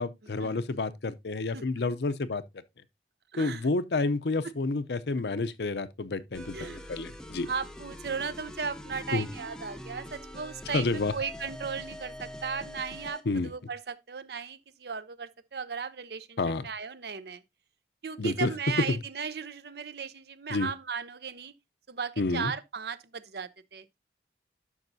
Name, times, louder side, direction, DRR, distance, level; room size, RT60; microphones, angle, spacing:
voice 1, 0.0-2.4 3.4-7.5 9.1-9.3 10.7-11.1 13.3-13.5 16.4-16.6 18.2-18.5 18.9-19.0 20.5-20.7 22.2-22.5, left 3 dB, 70° left, 0.6 m, -29 dB
voice 2, 3.3-3.7 4.4-4.5 6.5-6.8 7.4-17.4 18.0-21.5 21.9-24.0, right 5 dB, 65° right, 0.6 m, -36 dB
sound 1, 6.3-13.3, left 1 dB, 5° left, 0.6 m, -44 dB
12.0 x 5.8 x 2.7 m
head